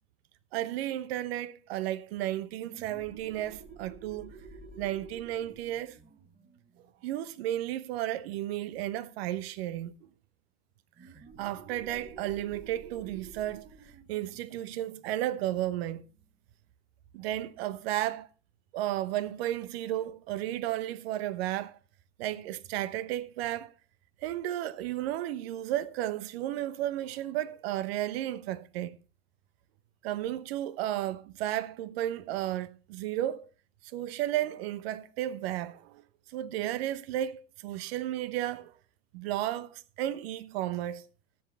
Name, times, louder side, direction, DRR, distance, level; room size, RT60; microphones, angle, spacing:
voice 1, 0.5-4.3 4.8-6.0 7.0-10.1 11.4-13.7 14.1-16.0 17.1-18.3 18.7-21.8 22.2-23.7 24.2-29.0 30.0-33.5 33.9-36.0 36.3-38.7 39.1-41.1, right 13 dB, 50° right, 1.0 m, -33 dB
sound 1, 2.6-7.9 11.0-16.2, right 4 dB, 20° right, 2.4 m, -51 dB
13.5 x 8.0 x 4.0 m
figure-of-eight pair, 85°, 38 cm